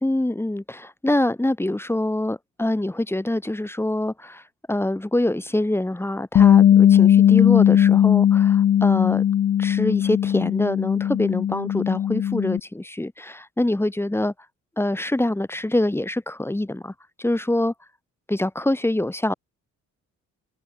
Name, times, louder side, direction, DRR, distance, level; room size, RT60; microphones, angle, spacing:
voice 1, 0.0-4.4 4.7-9.2 9.6-14.3 14.8-16.9 17.2-17.7 18.3-19.3, left 1 dB, 10° left, 1.4 m, -25 dB
Bass guitar, 6.4-12.6, left 10 dB, 40° left, 0.5 m, -17 dB
cardioid pair, 90°, 30 cm